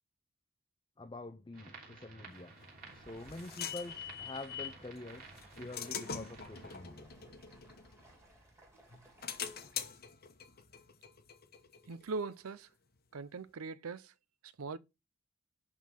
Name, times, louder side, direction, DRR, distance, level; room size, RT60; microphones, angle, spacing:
voice 1, 1.0-2.6 2.9-5.3 5.6-7.1, left 2 dB, 20° left, 0.5 m, -46 dB
sound 1, 1.5-6.8, right 3 dB, 40° right, 3.1 m, -54 dB
Stream, 2.5-10.0, right 1 dB, 10° right, 2.3 m, -62 dB
sound 2, 2.6-4.8 5.4-8.5 8.9-12.3, left 8 dB, 45° left, 1.0 m, -44 dB
voice 2, 11.9-12.7 13.1-14.1 14.4-14.8, right 4 dB, 80° right, 0.6 m, -41 dB
11.0 x 3.8 x 5.8 m
head